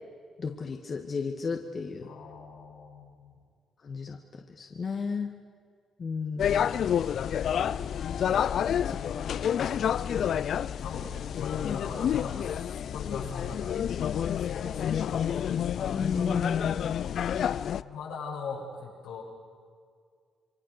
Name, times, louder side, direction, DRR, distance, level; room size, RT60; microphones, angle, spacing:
voice 1, 0.4-2.1 3.8-4.2 4.6-5.3 6.0-6.9 15.9-16.9, left 5 dB, 45° left, 3 dB, 1.8 m, -33 dB
voice 2, 2.0-3.4 8.8-10.3 10.8-13.6 13.9-15.6 17.7-19.2, left 5 dB, 90° left, -3 dB, 7.4 m, -41 dB
sound 1, 6.4-17.8, left 9 dB, 65° left, 0.5 m, -29 dB
27.0 x 23.5 x 6.7 m, 2.1 s
cardioid pair, 90°, 0 cm